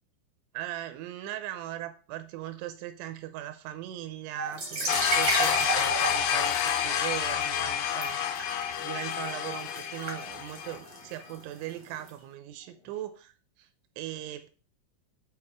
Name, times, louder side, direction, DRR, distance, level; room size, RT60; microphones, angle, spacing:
voice 1, 0.5-13.3 13.6-13.7 14.0-14.5, right 13 dB, 85° right, 10 dB, 3.0 m, -39 dB
sound 1, 4.3-5.6 6.4-7.6 8.4-8.9 9.3-9.8 10.5-11.8 12.6-13.0, right 1 dB, 65° left, 2.0 m, -49 dB
sound 2, 4.5-12.1, right 3 dB, 55° right, 1.2 m, -35 dB
sound 3, 4.9-10.8, left 10 dB, 85° left, 2.7 m, -29 dB
8.5 x 4.7 x 3.6 m, 0.36 s
omnidirectional pair, 5.5 m